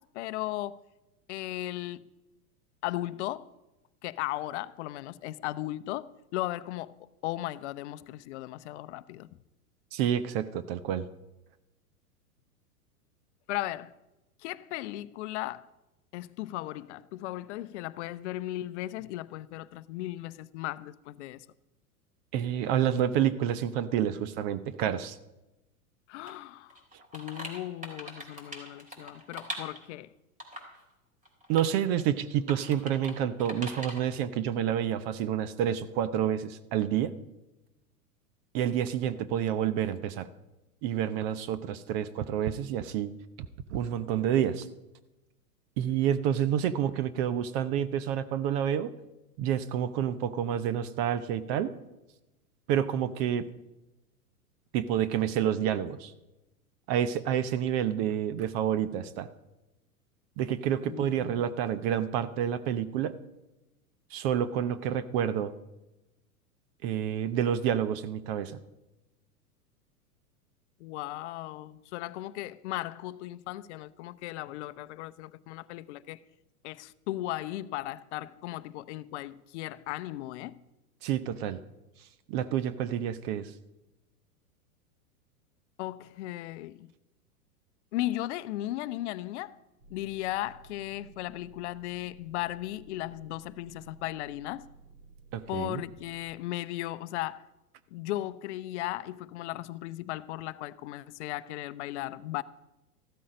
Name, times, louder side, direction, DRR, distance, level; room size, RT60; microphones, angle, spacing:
voice 1, 0.1-0.8 1.3-2.0 2.8-3.5 4.0-6.9 7.2-9.3 13.5-13.9 14.4-15.7 16.1-21.5 26.1-26.8 27.1-30.1 60.8-61.4 70.8-76.2 76.6-80.6 85.8-86.9 87.9-89.6 89.9-94.7 95.5-97.4 97.9-102.4, left 15 dB, 50° left, 0.7 m, -36 dB
voice 2, 9.9-11.1 22.3-25.2 31.5-37.1 38.5-40.3 40.8-43.1 43.7-44.7 45.8-48.9 49.4-51.7 52.7-53.5 54.7-56.1 56.9-59.3 60.4-63.1 64.1-65.5 66.8-68.6 81.0-81.6 82.3-83.5 95.3-95.8, right 10 dB, 40° right, 0.8 m, -29 dB
sound 1, 26.3-26.4 26.7-29.9 30.4-30.8 31.3-31.7 32.0-32.1 32.5-33.1 33.4-34.0, equal, 15° right, 3.3 m, -41 dB
sound 2, 89.8-96.2, right 5 dB, 70° right, 6.7 m, -55 dB
14.5 x 12.5 x 5.1 m
hypercardioid pair, 105°, 45 cm